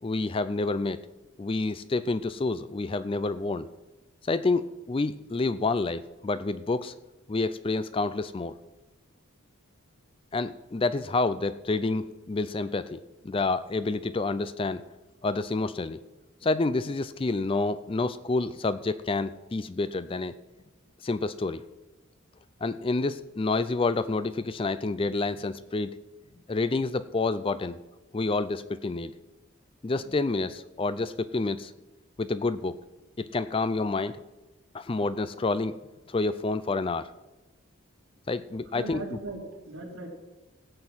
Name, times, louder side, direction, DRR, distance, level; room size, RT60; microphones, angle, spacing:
voice 1, 0.0-1.0 1.4-3.7 4.2-6.9 7.3-8.5 10.3-14.8 15.2-16.0 16.4-20.4 21.0-21.6 22.6-26.0 26.5-27.8 28.1-29.1 29.8-31.7 32.2-32.8 33.2-34.2 34.7-35.8 36.1-37.1 38.3-39.2, left 3 dB, 25° left, 14 dB, 0.4 m, -28 dB
voice 2, 38.7-40.1, right 2 dB, 70° right, -1 dB, 3.2 m, -38 dB
16.5 x 7.7 x 6.2 m, 1.1 s
head